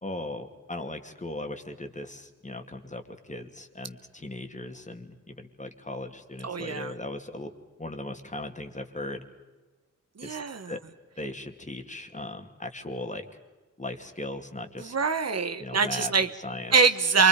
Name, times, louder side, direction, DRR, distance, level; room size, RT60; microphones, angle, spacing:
voice 1, 0.0-7.5 7.8-9.2 10.2-10.4 10.7-10.8 11.2-13.3 13.8-14.9 15.6-16.7, left 1 dB, 25° left, 5 dB, 2.4 m, -38 dB
voice 2, 6.4-6.9 10.2-10.7 14.8-16.3 16.7-17.3, right 5 dB, 55° right, 10 dB, 1.2 m, -24 dB
28.0 x 24.0 x 5.1 m, 1.2 s
cardioid pair, 50°, 31 cm